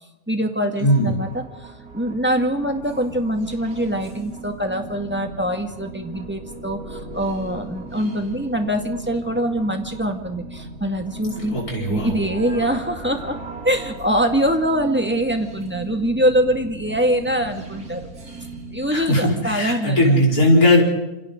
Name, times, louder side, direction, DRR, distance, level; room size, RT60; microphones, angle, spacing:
voice 1, 0.3-11.6 11.9-13.4 13.6-18.1 18.7-20.0, equal, 5° right, 4 dB, 2.0 m, -23 dB
sound 1, 0.7-19.5, right 3 dB, 90° right, 3.8 m, -38 dB
voice 2, 0.8-1.1 11.3-12.1 18.9-20.8, left 1 dB, 80° left, -3 dB, 5.4 m, -18 dB
28.5 x 27.0 x 3.9 m, 0.95 s
omnidirectional pair, 1.5 m